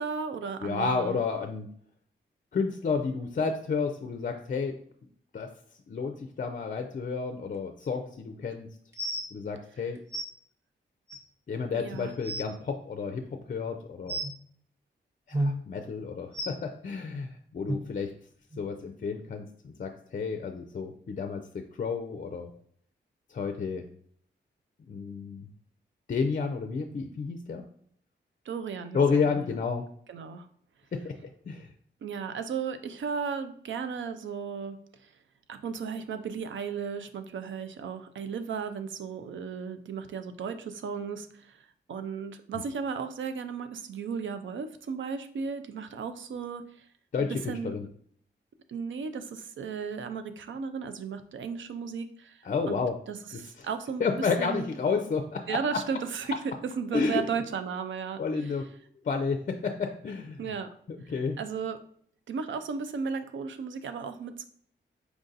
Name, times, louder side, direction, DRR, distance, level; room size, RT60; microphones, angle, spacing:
voice 1, 0.0-1.2 11.7-12.1 28.5-29.5 30.1-30.5 32.0-34.8 35.0-35.1 35.5-46.9 47.3-47.7 48.7-52.8 53.1-54.1 54.4-54.7 55.5-58.5 60.4-60.7 61.4-61.8 62.3-64.5, right 6 dB, 85° right, 10 dB, 0.5 m, -35 dB
voice 2, 0.6-1.7 2.5-4.7 5.3-5.5 5.9-8.7 9.3-10.0 11.5-14.2 15.3-18.1 18.6-22.5 23.3-23.8 24.9-25.5 26.1-27.6 28.9-29.8 30.9-31.2 31.5-31.7 47.1-47.9 52.4-53.0 53.3-53.7 54.0-55.6 56.9-57.3 58.2-58.6 59.0-60.4 60.9-61.4, left 5 dB, 45° left, 5 dB, 0.4 m, -31 dB
sound 1, 8.9-9.3 10.1-10.2 11.1-11.2 11.8-11.9 12.1-12.5 14.1-14.3 15.3-15.5 16.3-16.5 17.7-17.8 18.5-18.6 19.3-19.4, right 1 dB, 15° right, 0.8 m, -31 dB
4.7 x 2.5 x 3.9 m, 0.62 s
cardioid pair, 85°, 19 cm